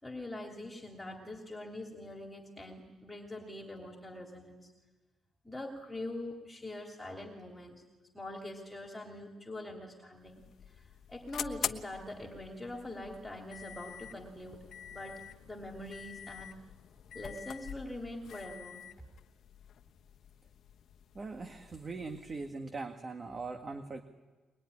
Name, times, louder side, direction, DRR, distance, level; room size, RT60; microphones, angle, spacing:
voice 1, 0.0-4.7 5.4-7.8 8.1-14.6 14.9-16.6 17.1-18.8, left 1 dB, 10° left, 1 dB, 3.1 m, -44 dB
sound 1, 10.1-22.6, left 9 dB, 65° left, 1.2 m, -46 dB
voice 2, 21.2-24.0, right 3 dB, 35° right, 6 dB, 1.8 m, -41 dB
23.5 x 21.5 x 9.8 m, 1.2 s
cardioid pair, 90°, 0 cm